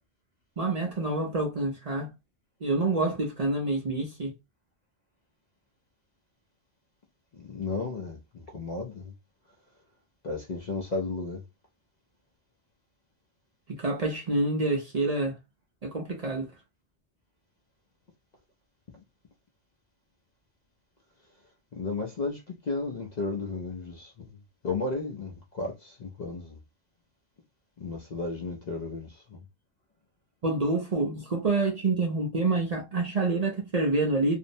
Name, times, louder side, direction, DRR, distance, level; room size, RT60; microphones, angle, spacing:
voice 1, 0.6-2.1 2.6-4.3 13.7-15.3 15.8-16.5 30.4-34.4, right 2 dB, 45° right, 0.6 m, -27 dB
voice 2, 7.3-9.1 10.2-11.4 18.9-19.0 21.7-26.6 27.8-29.5, left 3 dB, 50° left, 0.5 m, -34 dB
2.6 x 2.0 x 2.6 m
omnidirectional pair, 1.2 m